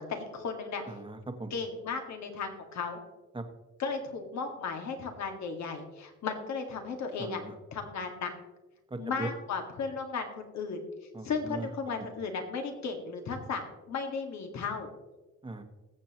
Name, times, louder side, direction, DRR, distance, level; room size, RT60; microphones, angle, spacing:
voice 1, 0.0-0.8 1.5-3.0 3.8-7.4 7.7-8.3 9.0-10.8 11.2-14.9, left 5 dB, 65° left, 4 dB, 2.0 m, -35 dB
voice 2, 0.9-1.5 3.3-3.4 7.2-7.5 8.9-9.3 11.1-11.7 15.4-15.6, right 2 dB, 15° right, 6 dB, 1.4 m, -39 dB
20.5 x 7.4 x 3.0 m, 1.1 s
cardioid pair, 90°, 30 cm